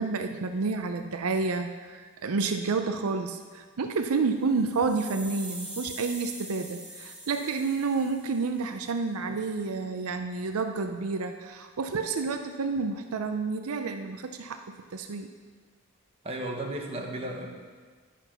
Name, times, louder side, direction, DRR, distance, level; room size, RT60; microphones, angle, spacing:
voice 1, 0.0-15.3, right 4 dB, 85° right, 6 dB, 0.5 m, -30 dB
sound 1, 4.4-8.6, right 1 dB, 5° right, 1.9 m, -43 dB
voice 2, 16.2-17.5, right 1 dB, 30° right, 0 dB, 1.2 m, -34 dB
11.0 x 5.9 x 5.7 m, 1.5 s
head